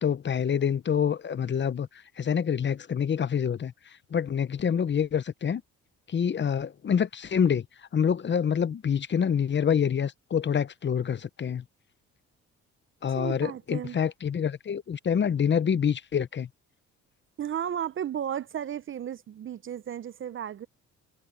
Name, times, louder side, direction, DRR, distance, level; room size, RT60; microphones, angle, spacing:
voice 1, 0.0-1.9 2.2-3.7 4.1-5.6 6.1-7.6 7.9-11.6 13.0-16.5, left 7 dB, 40° left, 0.8 m, -26 dB
voice 2, 13.1-14.0 17.4-20.7, right 9 dB, 40° right, 0.5 m, -34 dB
cardioid pair, 90°, 30 cm